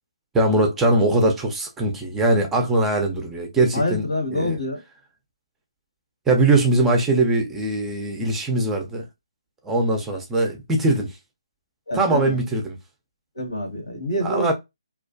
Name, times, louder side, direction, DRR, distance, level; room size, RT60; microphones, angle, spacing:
voice 1, 0.3-4.6 6.3-9.1 9.6-11.2 11.9-12.8 14.2-14.5, right 2 dB, 10° right, 0.4 m, -21 dB
voice 2, 3.7-4.8 11.9-12.3 13.3-14.5, left 1 dB, 85° left, 1.2 m, -26 dB
2.4 x 2.2 x 2.5 m
figure-of-eight pair, 150°, 3 cm